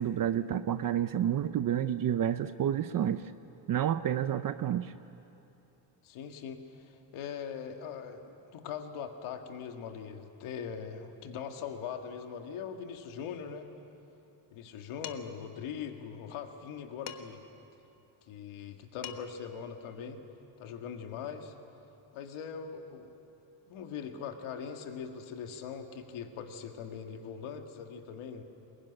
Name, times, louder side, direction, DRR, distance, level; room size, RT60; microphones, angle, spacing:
voice 1, 0.0-3.2 3.7-4.9, right 10 dB, 45° right, 11 dB, 0.6 m, -29 dB
voice 2, 6.0-13.7 14.5-17.4 18.3-20.2 20.6-21.5 22.1-23.1 23.7-28.4, left 7 dB, 80° left, 4 dB, 2.1 m, -41 dB
Dishes pots and pans, 15.0-15.5 17.1-17.5 18.7-18.8 19.0-19.5, left 9 dB, 55° left, 1.4 m, -44 dB
22.0 x 21.5 x 9.9 m, 2.8 s
cardioid pair, 130°, 49 cm